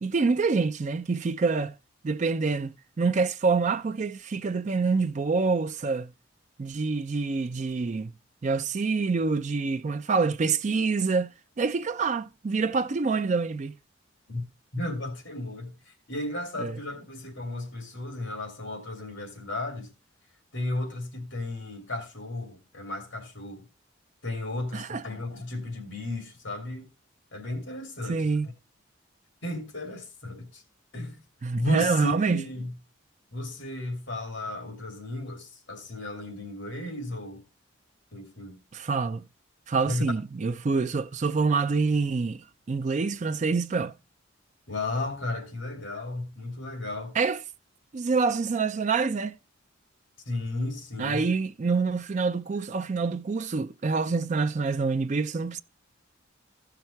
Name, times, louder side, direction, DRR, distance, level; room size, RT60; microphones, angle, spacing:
voice 1, 0.0-1.7 2.0-6.1 6.6-8.1 8.4-11.3 11.6-13.7 16.6-16.7 24.7-25.0 28.1-28.5 31.4-32.5 38.7-39.2 39.7-43.9 47.2-47.4 47.9-49.3 51.0-55.6, right 4 dB, 35° right, 0.4 m, -26 dB
voice 2, 14.7-19.9 20.5-23.7 24.2-26.9 27.3-28.5 29.4-30.6 30.9-31.2 31.5-32.7 33.3-37.4 38.1-38.6 39.9-40.1 44.7-47.2 50.3-51.3, left 2 dB, 70° left, 2.8 m, -34 dB
15.0 x 5.8 x 3.2 m
head